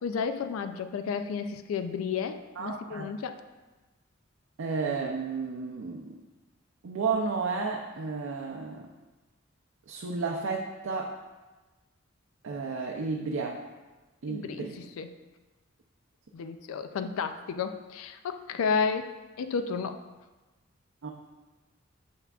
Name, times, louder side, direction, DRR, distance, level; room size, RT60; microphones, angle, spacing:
voice 1, 0.0-3.4 14.3-15.1 16.3-19.1 19.4-20.0, left 5 dB, 90° left, 9 dB, 0.3 m, -32 dB
voice 2, 2.6-3.1 4.6-6.2 6.8-8.9 9.9-11.2 12.4-13.6 14.2-14.8 21.0-21.1, right 4 dB, 75° right, 1 dB, 0.5 m, -32 dB
7.1 x 5.7 x 2.3 m, 1.2 s
head